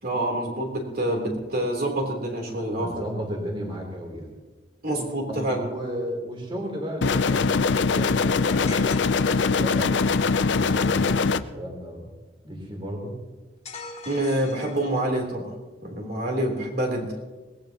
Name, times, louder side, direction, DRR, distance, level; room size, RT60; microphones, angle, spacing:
voice 1, 0.0-3.0 4.8-5.6 14.1-15.5 15.8-17.1, right 1 dB, 55° right, 1 dB, 3.6 m, -27 dB
voice 2, 1.2-1.6 2.7-4.3 5.3-12.1 12.4-13.1, equal, 30° right, 0 dB, 3.4 m, -34 dB
sound 1, 7.0-11.4, left 4 dB, 75° left, 0.6 m, -22 dB
sound 2, 8.7-9.8 13.6-15.2, left 4 dB, 35° left, 2.0 m, -41 dB
22.0 x 19.0 x 3.0 m, 1.2 s
head